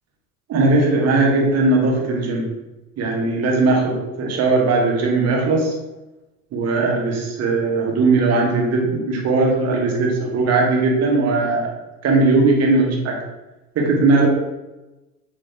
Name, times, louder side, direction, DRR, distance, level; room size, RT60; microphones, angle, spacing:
voice 1, 0.5-2.5 3.0-5.7 6.5-11.7 12.0-13.2 13.7-14.3, right 3 dB, 30° right, 0 dB, 1.1 m, -18 dB
3.0 x 2.7 x 3.5 m, 1.0 s
figure-of-eight pair, 75°, 48 cm